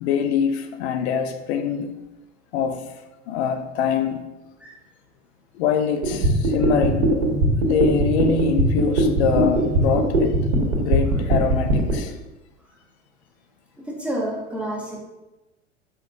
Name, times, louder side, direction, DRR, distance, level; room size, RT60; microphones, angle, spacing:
voice 1, 0.0-1.9 2.5-2.9 3.3-4.3 5.5-7.1 7.6-10.4 10.8-12.1, left 7 dB, 60° left, 8 dB, 0.8 m, -24 dB
sound 1, 6.0-11.9, right 2 dB, 75° right, 1.7 m, -20 dB
voice 2, 13.8-15.0, right 1 dB, 5° right, -4 dB, 1.7 m, -29 dB
7.2 x 5.5 x 2.7 m, 1.0 s
figure-of-eight pair, 80°, 36 cm